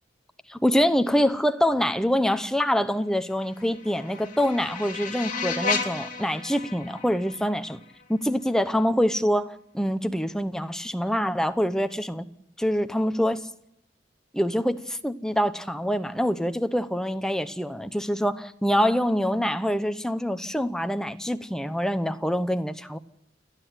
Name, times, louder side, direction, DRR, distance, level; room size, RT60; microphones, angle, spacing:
voice 1, 0.5-7.7 8.1-12.2 12.6-13.4 14.3-23.0, equal, 5° left, 0.9 m, -25 dB
sound 1, 3.4-8.4, left 5 dB, 45° left, 2.7 m, -33 dB
29.0 x 10.5 x 9.2 m
head